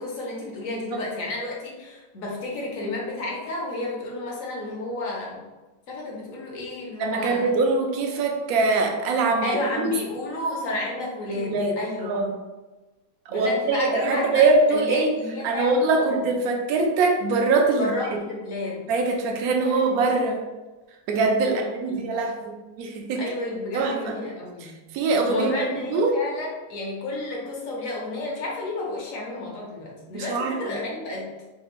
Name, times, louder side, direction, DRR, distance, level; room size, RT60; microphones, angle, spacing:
voice 1, 0.0-5.4 5.9-7.5 9.4-12.1 13.3-16.2 17.8-18.8 19.6-19.9 21.4-22.1 23.2-24.8 25.3-31.3, left 2 dB, 60° left, -3 dB, 1.0 m, -31 dB
voice 2, 7.0-9.6 9.8-9.9 11.4-11.7 12.0-12.3 13.3-15.1 15.4-17.9 18.9-20.4 21.1-23.2 23.7-24.1 24.6-24.7 24.9-25.5 25.9-26.1 30.1-30.6, right 3 dB, 70° right, 2 dB, 0.9 m, -22 dB
3.4 x 2.3 x 2.9 m, 1.2 s
omnidirectional pair, 1.9 m